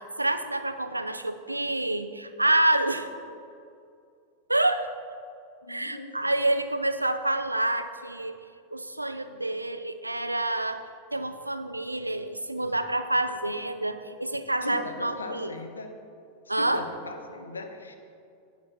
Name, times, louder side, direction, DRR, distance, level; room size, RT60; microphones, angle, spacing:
voice 1, 0.0-3.1 4.5-4.9 5.7-8.4 8.7-10.8 11.1-15.5 16.5-16.8, right 1 dB, 85° right, 10 dB, 0.5 m, -27 dB
voice 2, 5.6-6.1 14.6-15.9 16.4-18.0, left 3 dB, 75° left, 6 dB, 0.9 m, -39 dB
11.0 x 8.4 x 4.3 m, 2.4 s
figure-of-eight pair, 90°, 0 cm